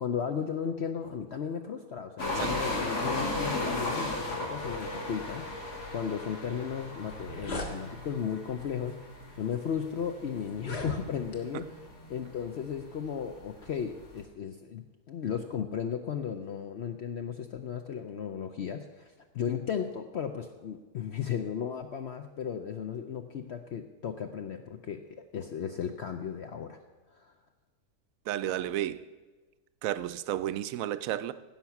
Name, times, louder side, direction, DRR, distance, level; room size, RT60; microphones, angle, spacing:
voice 1, 0.0-11.7 12.1-26.8 27.1-27.3, left 7 dB, 60° left, 0.7 m, -35 dB
sound 1, 2.2-14.2, left 2 dB, 90° left, 2.6 m, -36 dB
sound 2, 7.1-7.7 8.6-8.8 9.5-9.6 10.5-11.4, equal, 45° left, 1.5 m, -38 dB
voice 2, 28.3-29.1 29.8-31.3, right 12 dB, 70° right, 0.9 m, -32 dB
16.0 x 5.9 x 5.8 m
omnidirectional pair, 1.6 m